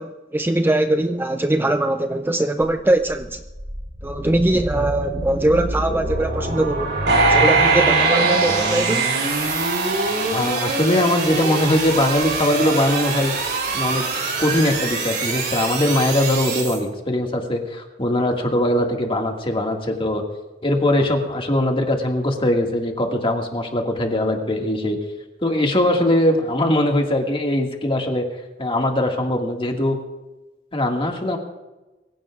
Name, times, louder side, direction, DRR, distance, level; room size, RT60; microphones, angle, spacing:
voice 1, 0.0-3.4 4.0-7.0 7.3-9.2, right 1 dB, 10° right, 7 dB, 0.5 m, -21 dB
sound 1, 2.6-16.8, right 3 dB, 65° right, 3.7 m, -26 dB
sound 2, 7.1-10.5 11.0-11.1, right 3 dB, 85° right, 6.5 m, -20 dB
voice 2, 10.3-13.3 13.7-14.1 14.4-20.2 20.6-25.0 25.4-28.3 28.6-30.0 30.7-31.4, left 1 dB, 30° left, 2 dB, 1.9 m, -21 dB
23.5 x 16.0 x 2.5 m, 1.1 s
head